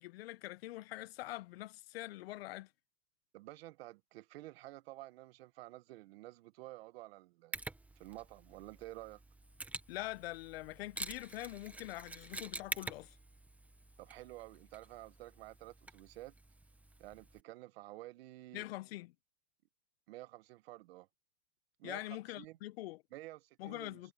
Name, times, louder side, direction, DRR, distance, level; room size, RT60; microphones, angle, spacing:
voice 1, 0.0-2.7 9.9-13.2 18.5-19.1 21.8-23.0 23.6-24.1, left 17 dB, 45° left, 0.9 m, -44 dB
voice 2, 3.3-7.6 8.0-9.2 14.0-16.3 17.0-18.6 20.1-21.1 21.8-22.6 23.1-24.1, right 17 dB, 45° right, 1.3 m, -51 dB
Mechanisms, 7.5-17.4, right 2 dB, 5° right, 1.4 m, -48 dB
hypercardioid pair, 150°, 41 cm